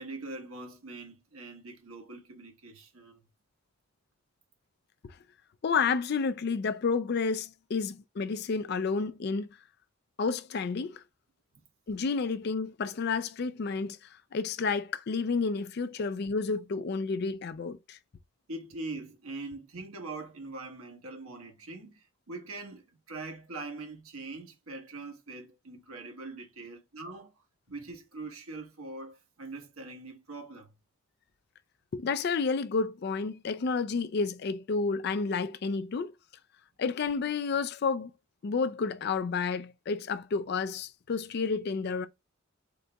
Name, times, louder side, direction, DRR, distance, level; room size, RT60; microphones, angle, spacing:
voice 1, 0.0-3.2 11.5-11.6 18.5-22.8 23.1-27.3 27.7-30.7, right 3 dB, 75° right, 1.2 m, -42 dB
voice 2, 5.6-9.5 10.2-11.0 11.9-18.0 31.9-36.1 36.8-38.1 38.4-42.1, left 4 dB, 50° left, 0.3 m, -30 dB
3.9 x 3.7 x 2.2 m
head